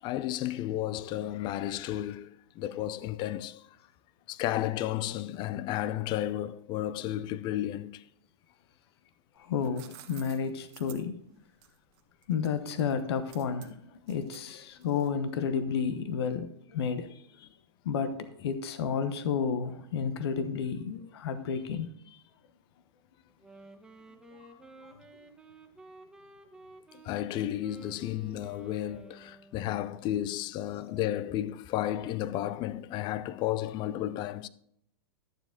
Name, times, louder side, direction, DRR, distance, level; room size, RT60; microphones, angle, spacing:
voice 1, 0.0-3.8 4.3-8.1 24.5-24.6 26.9-34.5, left 13 dB, 35° left, 0.5 m, -33 dB
sound 1, 9.3-15.3, right 13 dB, 45° right, 1.4 m, -54 dB
voice 2, 9.4-11.2 12.3-13.8 14.1-17.5 17.8-22.2, left 6 dB, 70° left, 1.1 m, -31 dB
Wind instrument woodwind instrument, 23.3-29.8, right 2 dB, 5° right, 1.1 m, -53 dB
12.0 x 7.2 x 3.8 m
hypercardioid pair, 130°, 14 cm